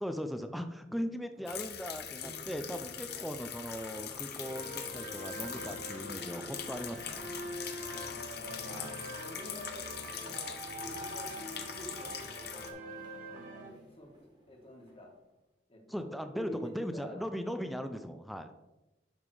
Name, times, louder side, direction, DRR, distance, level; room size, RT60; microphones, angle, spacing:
voice 1, 0.0-7.3 8.7-8.9 15.9-18.5, equal, ahead, 7 dB, 0.4 m, -39 dB
sound 1, 1.3-15.2, right 1 dB, 25° right, 1.7 m, -58 dB
sound 2, 1.5-12.7, left 8 dB, 60° left, 0.9 m, -42 dB
sound 3, 4.4-13.7, right 1 dB, 45° right, 2.0 m, -44 dB
voice 2, 7.8-8.8 9.1-12.7 13.5-15.1 15.7-17.3, left 1 dB, 30° left, 0 dB, 1.7 m, -49 dB
10.5 x 3.7 x 4.8 m, 1.0 s
head